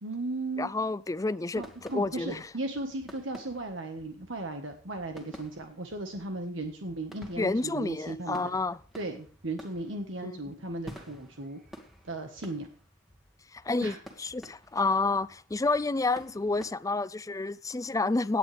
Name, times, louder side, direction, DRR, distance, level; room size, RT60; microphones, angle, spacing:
voice 1, 0.0-0.7 1.5-8.5 9.0-11.6 12.0-12.7 13.8-14.0, right 2 dB, 80° right, 1.5 m, -36 dB
voice 2, 0.6-1.6 1.9-2.4 7.4-8.8 10.2-10.4 13.5-18.4, left 3 dB, 15° left, 0.4 m, -29 dB
sound 1, 1.5-16.7, equal, ahead, 2.0 m, -52 dB
17.5 x 9.7 x 3.4 m
head